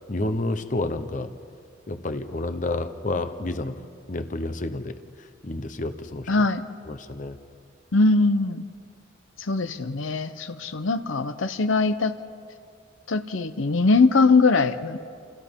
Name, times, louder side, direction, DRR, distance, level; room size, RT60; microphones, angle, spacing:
voice 1, 0.1-1.3 1.9-3.8 4.1-6.4 6.9-7.4, left 2 dB, 40° left, 9 dB, 0.8 m, -30 dB
voice 2, 6.3-6.6 7.9-8.6 9.4-12.2 13.1-15.0, left 3 dB, 75° left, 10 dB, 0.8 m, -21 dB
29.5 x 29.0 x 3.7 m, 2.4 s
head